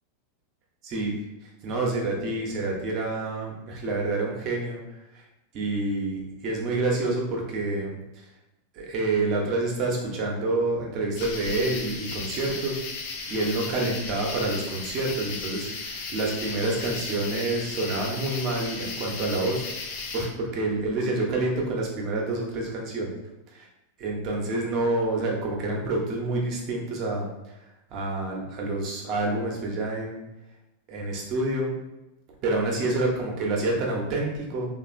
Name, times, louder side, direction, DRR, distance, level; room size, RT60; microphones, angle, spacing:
voice 1, 0.8-1.2 1.6-4.8 5.1-5.2 5.5-8.3 8.7-12.8 13.3-19.7 20.1-23.2 23.5-23.7 24.0-27.3 27.9-30.2 30.9-31.7 32.4-34.7, right 2 dB, 45° right, -1 dB, 0.8 m, -28 dB
sound 1, 11.2-20.3, left 4 dB, 55° left, 0.5 m, -35 dB
2.8 x 2.5 x 2.5 m, 0.96 s
hypercardioid pair, 100°, 0 cm